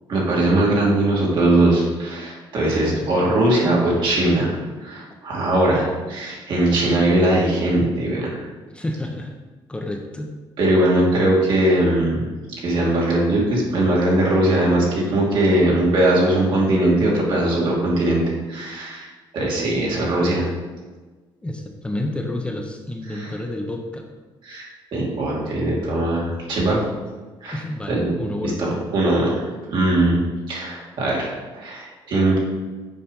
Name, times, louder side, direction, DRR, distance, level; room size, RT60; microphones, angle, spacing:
voice 1, 0.1-8.3 10.6-12.3 12.6-18.2 18.5-19.1 19.3-20.5 23.1-23.3 24.4-26.8 27.4-27.6 27.9-28.1 28.4-29.4 29.7-30.2 30.5-32.4, right 1 dB, 60° right, -4 dB, 2.6 m, -20 dB
voice 2, 2.7-3.1 8.7-9.3 9.7-10.3 21.4-24.0 27.5-28.6, left 1 dB, 10° left, 2 dB, 0.8 m, -29 dB
7.2 x 5.1 x 5.4 m, 1.3 s
cardioid pair, 115°, 9 cm